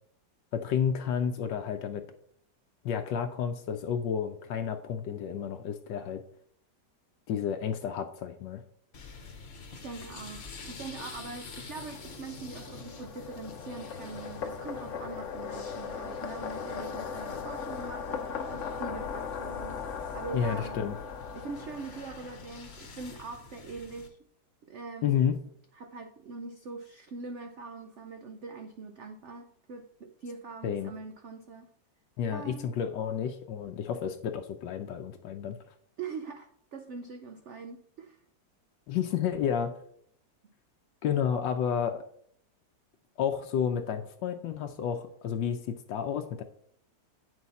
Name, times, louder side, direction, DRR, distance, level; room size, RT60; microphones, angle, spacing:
voice 1, 0.5-2.0 2.8-6.2 7.3-8.6 20.3-21.0 25.0-25.4 30.6-30.9 32.2-35.6 38.9-39.7 41.0-42.0 43.2-46.4, left 8 dB, 80° left, 6 dB, 1.3 m, -31 dB
sound 1, 8.9-24.1, left 4 dB, 40° left, 1.1 m, -47 dB
voice 2, 9.8-20.8 21.3-24.2 24.7-25.2 25.7-31.7 32.3-32.7 36.0-38.2 40.4-40.5, right 4 dB, 65° right, 6 dB, 0.7 m, -42 dB
sound 2, 12.0-22.7, left 6 dB, 55° left, 0.9 m, -38 dB
8.9 x 6.3 x 4.1 m, 0.64 s
omnidirectional pair, 2.0 m